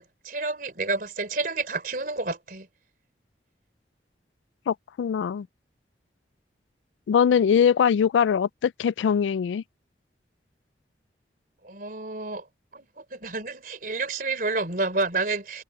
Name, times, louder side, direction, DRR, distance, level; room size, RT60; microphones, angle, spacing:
voice 1, 0.0-2.7 11.6-12.5 12.7-15.6, right 3 dB, 50° right, 3.5 m, -30 dB
voice 2, 4.7-5.5 7.1-9.6, left 7 dB, 90° left, 0.3 m, -22 dB
head